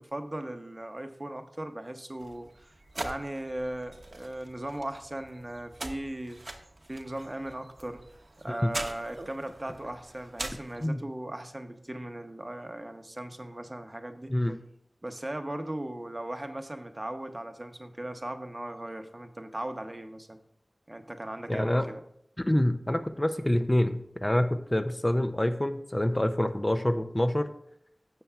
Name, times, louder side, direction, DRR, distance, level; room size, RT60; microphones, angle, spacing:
voice 1, 0.0-6.6 6.9-8.0 8.4-14.3 15.0-20.4 20.9-22.0, right 1 dB, 30° right, 7 dB, 0.8 m, -38 dB
sound 1, 2.2-10.9, right 2 dB, 60° right, 0.9 m, -43 dB
voice 2, 21.5-21.9 22.4-27.5, left 1 dB, 25° left, 8 dB, 0.5 m, -26 dB
12.5 x 7.6 x 2.4 m, 0.73 s
wide cardioid pair, 65°, 0 cm